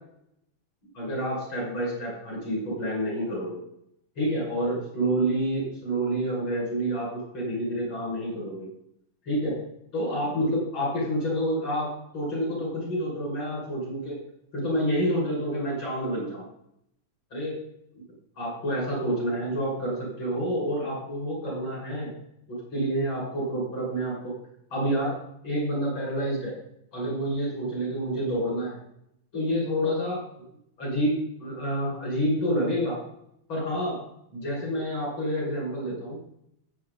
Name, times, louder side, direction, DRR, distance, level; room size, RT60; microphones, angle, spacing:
voice 1, 0.9-3.6 4.2-8.7 9.2-9.6 9.9-14.2 14.5-16.4 17.3-17.6 17.9-18.0 18.4-22.1 22.5-24.3 24.7-25.2 25.4-26.5 26.9-28.8 29.3-30.2 30.8-33.0 33.5-34.0 34.3-36.2, equal, 85° left, -4 dB, 6.9 m, -28 dB
20.0 x 8.0 x 4.0 m, 0.77 s
omnidirectional pair, 2.1 m